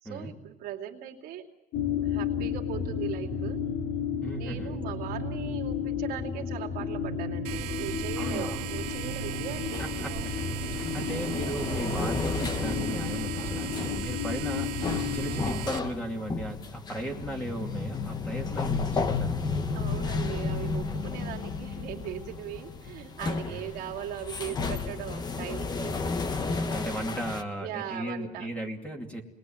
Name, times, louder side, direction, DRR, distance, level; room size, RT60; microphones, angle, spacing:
voice 1, 0.0-1.5 2.0-3.6 4.4-10.3 14.2-14.5 19.7-25.9 27.6-28.5, right 11 dB, 65° right, 0 dB, 2.7 m, -39 dB
sound 1, 1.7-15.4, left 6 dB, 60° left, 3.2 m, -33 dB
voice 2, 4.2-4.7 8.2-8.6 9.8-19.7 23.5-23.6 25.7-26.1 26.6-29.2, right 1 dB, 5° left, 2 dB, 2.7 m, -37 dB
sound 2, 7.4-15.8, right 14 dB, 85° right, 1.5 m, -38 dB
sound 3, 8.8-27.4, left 4 dB, 25° left, 1.2 m, -33 dB
29.0 x 20.5 x 9.1 m, 1.1 s
cardioid pair, 160°, 17 cm